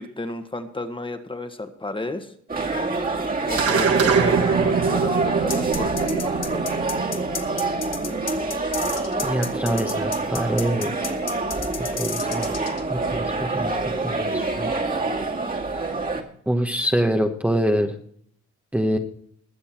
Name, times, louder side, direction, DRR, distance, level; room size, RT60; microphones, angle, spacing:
voice 1, 0.0-2.3 3.5-6.8, left 2 dB, 15° left, 7 dB, 1.5 m, -33 dB
sound 1, 2.5-16.2, right 3 dB, 30° right, 2.1 m, -26 dB
sound 2, 3.6-8.2, right 6 dB, 55° right, 1.6 m, -24 dB
sound 3, 5.5-12.8, left 7 dB, 55° left, 1.8 m, -32 dB
voice 2, 9.2-10.9 12.0-12.5 12.9-14.7 16.5-17.9 18.7-19.0, equal, 5° right, 3 dB, 1.2 m, -25 dB
21.0 x 7.1 x 4.4 m, 0.62 s
cardioid pair, 90°, 30 cm